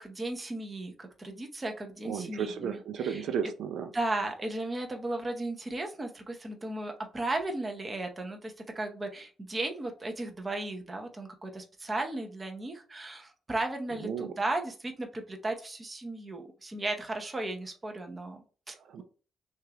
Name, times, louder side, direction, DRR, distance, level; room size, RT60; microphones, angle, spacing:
voice 1, 0.0-3.2 3.9-19.0, right 2 dB, 15° right, 4 dB, 0.7 m, -35 dB
voice 2, 2.0-3.9 14.0-14.3 18.8-19.0, right 7 dB, 75° right, 8 dB, 0.5 m, -34 dB
6.4 x 2.4 x 2.9 m, 0.38 s
cardioid pair, 165°, 0 cm